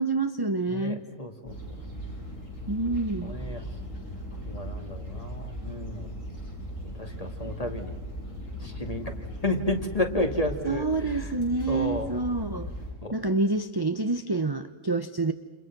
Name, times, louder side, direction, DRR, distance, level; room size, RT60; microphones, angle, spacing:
voice 1, 0.0-1.0 2.7-3.3 10.6-12.7 13.1-15.3, right 3 dB, 20° right, 8 dB, 0.7 m, -27 dB
voice 2, 0.7-1.6 3.2-3.6 4.5-6.2 7.0-8.0 8.6-9.1 9.4-11.3 11.7-12.1 13.0-13.1, left 1 dB, 25° left, 5 dB, 2.4 m, -31 dB
sound 1, 1.5-12.9, equal, 70° left, 8.1 m, -38 dB
29.5 x 28.5 x 6.1 m, 1.2 s
omnidirectional pair, 1.4 m